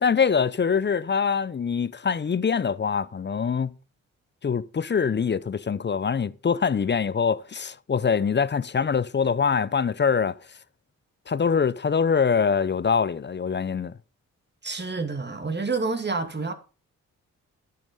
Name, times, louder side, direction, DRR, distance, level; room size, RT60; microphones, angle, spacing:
voice 1, 0.0-3.7 4.4-10.3 11.3-13.9, left 6 dB, 35° left, 0.6 m, -24 dB
voice 2, 14.6-16.5, right 4 dB, 30° right, 2.3 m, -28 dB
10.5 x 8.5 x 5.3 m
supercardioid pair, 55°, 33 cm